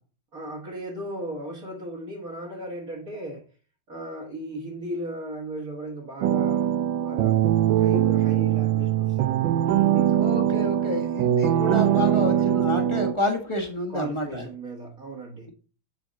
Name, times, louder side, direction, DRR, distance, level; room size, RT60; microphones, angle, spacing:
voice 1, 0.3-3.4 3.9-7.5 7.8-10.7 12.1-12.6 13.9-15.5, right 1 dB, 50° right, 2.0 m, -36 dB
sound 1, 6.2-13.1, right 11 dB, 75° right, 1.3 m, -22 dB
voice 2, 10.2-14.4, left 1 dB, 15° left, 1.2 m, -29 dB
8.9 x 4.7 x 4.0 m
omnidirectional pair, 2.1 m